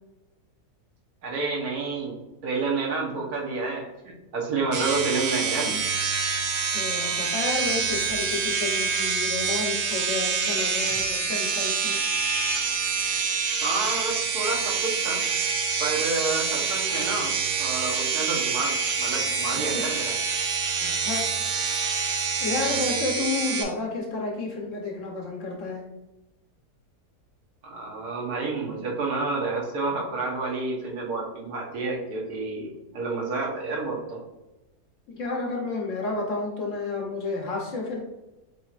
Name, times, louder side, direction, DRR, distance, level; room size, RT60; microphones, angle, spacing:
voice 1, 1.2-2.1 2.4-5.7 13.6-15.2 15.8-17.3 17.6-20.1 27.6-34.2, right 3 dB, 70° right, -3 dB, 1.5 m, -29 dB
sound 1, 4.7-23.6, right 5 dB, 85° right, 1.3 m, -26 dB
voice 2, 6.7-12.0 19.7-19.8 20.8-21.2 22.4-25.8 35.1-38.0, left 3 dB, 55° left, -1 dB, 1.1 m, -31 dB
7.2 x 3.0 x 2.4 m, 1.0 s
omnidirectional pair, 1.7 m